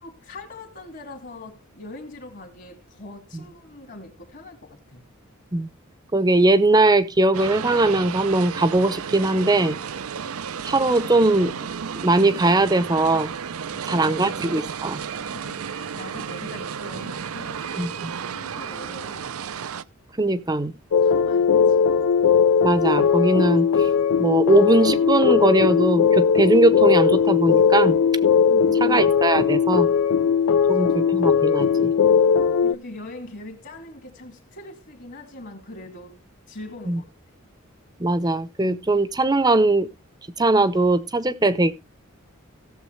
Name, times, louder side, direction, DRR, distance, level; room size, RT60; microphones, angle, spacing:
voice 1, 0.0-5.0 13.7-14.3 15.2-19.3 21.0-21.9 28.5-29.0 30.6-30.9 32.6-36.2 36.5-37.1, left 2 dB, 55° left, 2.4 m, -41 dB
voice 2, 6.1-9.8 10.6-11.5 12.0-13.3 13.9-15.0 17.8-17.9 20.2-20.7 22.6-23.9 24.2-28.0 28.8-29.9 30.7-31.9 36.9-37.0 38.0-39.9 40.4-41.7, right 2 dB, 20° right, 0.7 m, -20 dB
sound 1, 7.3-19.8, right 7 dB, 85° right, 0.5 m, -33 dB
sound 2, 20.9-32.8, left 7 dB, 85° left, 0.5 m, -19 dB
17.5 x 7.2 x 3.2 m
head